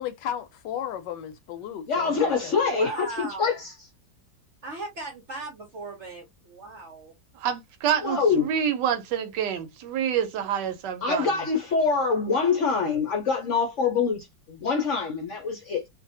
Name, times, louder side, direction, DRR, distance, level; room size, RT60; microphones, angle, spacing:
voice 1, 0.0-2.5, left 10 dB, 75° left, 1.2 m, -34 dB
voice 2, 1.9-3.7 8.0-8.5 11.0-15.9, left 5 dB, 60° left, 0.8 m, -25 dB
voice 3, 2.5-3.6 4.6-7.2, right 2 dB, 60° right, 0.8 m, -38 dB
voice 4, 7.4-11.3, right 9 dB, 75° right, 1.2 m, -27 dB
2.7 x 2.5 x 2.6 m
omnidirectional pair, 2.0 m